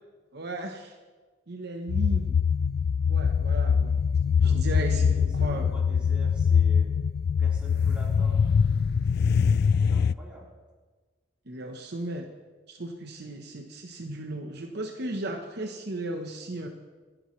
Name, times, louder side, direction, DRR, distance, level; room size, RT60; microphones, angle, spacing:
voice 1, 0.3-0.9 1.5-2.3 3.1-4.0 4.4-5.7 11.5-12.3 12.7-16.7, right 2 dB, 60° right, 3 dB, 1.0 m, -35 dB
sound 1, 1.9-10.1, left 6 dB, 60° left, 0.3 m, -23 dB
voice 2, 4.2-6.9 7.4-8.5 9.9-10.5, right 1 dB, 5° right, -6 dB, 4.0 m, -46 dB
26.5 x 10.0 x 3.2 m, 1.3 s
head